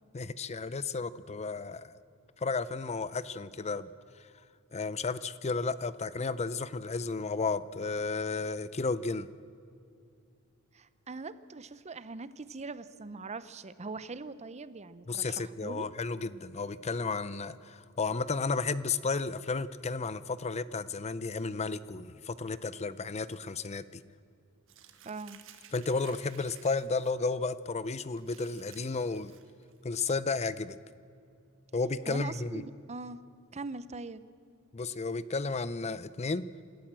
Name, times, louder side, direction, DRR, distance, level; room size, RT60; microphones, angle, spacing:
voice 1, 0.1-2.0 2.4-3.9 4.7-9.3 15.1-24.0 25.7-29.3 29.8-30.8 31.7-32.6 34.7-36.4, left 4 dB, 30° left, 0.6 m, -33 dB
voice 2, 10.7-15.9 25.0-25.4 32.1-33.2 33.5-34.2, right 3 dB, 30° right, 0.7 m, -41 dB
Crumpling crinkling, 24.7-27.1 27.5-27.7 28.1-29.8, right 9 dB, 65° right, 1.7 m, -56 dB
27.5 x 13.5 x 7.5 m
head